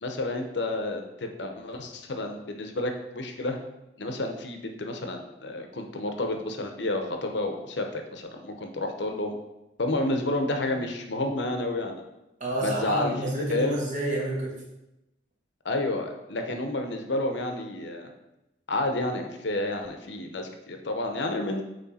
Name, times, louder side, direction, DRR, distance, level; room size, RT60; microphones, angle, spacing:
voice 1, 0.0-3.6 4.0-9.3 9.8-12.0 12.6-13.1 13.5-13.7 15.6-18.1 18.7-21.6, left 2 dB, 65° left, 4 dB, 0.8 m, -30 dB
voice 2, 12.4-14.5, right 1 dB, 40° right, -4 dB, 1.7 m, -29 dB
8.6 x 3.2 x 4.2 m, 0.94 s
head